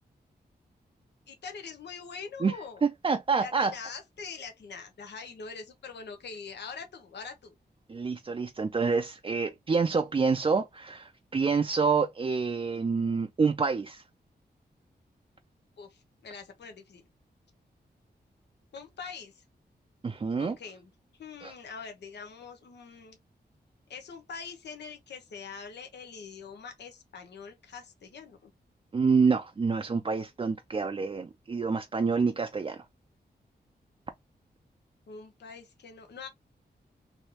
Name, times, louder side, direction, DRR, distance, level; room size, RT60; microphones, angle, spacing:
voice 1, 1.3-2.8 3.4-7.5 15.8-17.0 18.7-19.3 20.4-20.9 21.2-23.2 23.9-28.5 35.1-36.3, left 5 dB, 85° left, 0.8 m, -43 dB
voice 2, 2.8-3.7 7.9-14.0 20.0-20.6 21.4-21.5 28.9-32.8, right 5 dB, 30° right, 0.4 m, -27 dB
3.1 x 2.6 x 2.8 m
wide cardioid pair, 85°, 17 cm